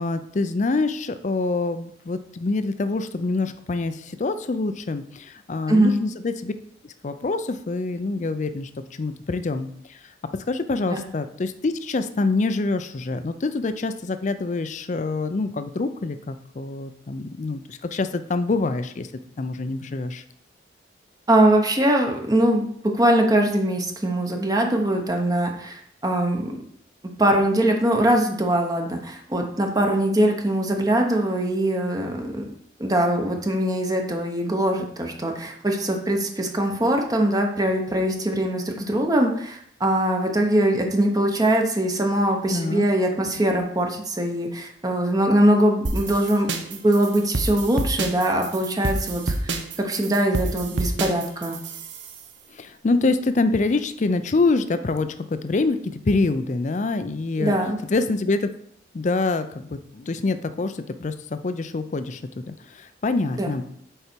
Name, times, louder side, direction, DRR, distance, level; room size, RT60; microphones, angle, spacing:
voice 1, 0.0-6.5 7.0-8.7 9.0-10.0 10.2-19.1 19.4-20.2 42.5-42.9 52.5-57.6 57.9-58.5 58.9-62.2 62.5-63.6, left 3 dB, 40° left, 11 dB, 0.4 m, -25 dB
voice 2, 21.3-26.6 27.2-32.4 32.8-51.6 57.4-57.8 63.4-63.5, right 1 dB, 20° right, 2 dB, 0.8 m, -22 dB
sound 1, 45.8-52.2, right 2 dB, 85° right, 0.8 m, -28 dB
6.6 x 4.7 x 4.4 m, 0.67 s
head